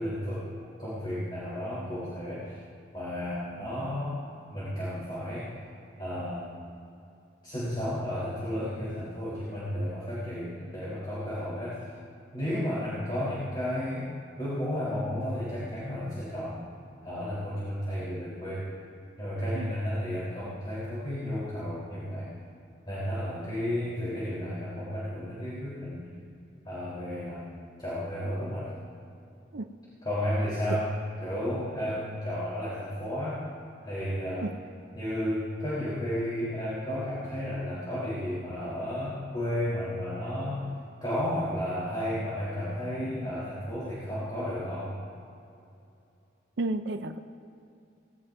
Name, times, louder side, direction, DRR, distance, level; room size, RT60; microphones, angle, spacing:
voice 1, 0.0-2.6 2.9-4.2 4.5-5.5 6.0-6.5 7.4-11.9 12.3-14.1 14.4-16.6 17.0-18.7 19.2-22.3 22.9-26.1 26.7-27.5 27.8-28.7 30.0-30.9 31.2-33.4 33.8-34.5 34.9-40.6 41.0-44.9, equal, 25° left, -9 dB, 3.9 m, -33 dB
voice 2, 46.6-47.2, right 2 dB, 70° right, 7 dB, 0.5 m, -32 dB
18.5 x 18.5 x 2.7 m, 2.6 s
head